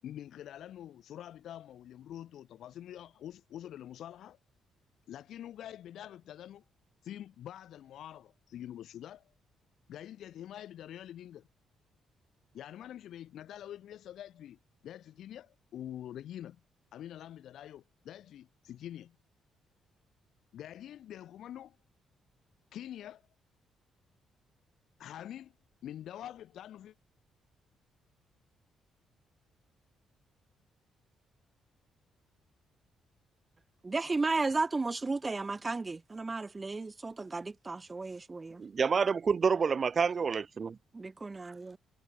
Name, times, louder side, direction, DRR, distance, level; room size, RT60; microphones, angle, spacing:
voice 1, 0.0-4.4 5.1-6.6 7.0-9.3 9.9-11.5 12.5-16.6 16.9-19.2 20.5-21.8 22.7-23.2 25.0-25.5 25.8-26.9, left 11 dB, 75° left, 7.9 m, -46 dB
voice 2, 33.8-38.6 40.9-41.8, right 3 dB, 25° right, 2.3 m, -34 dB
voice 3, 38.6-40.8, right 5 dB, 40° right, 2.1 m, -28 dB
cardioid pair, 90°, 0 cm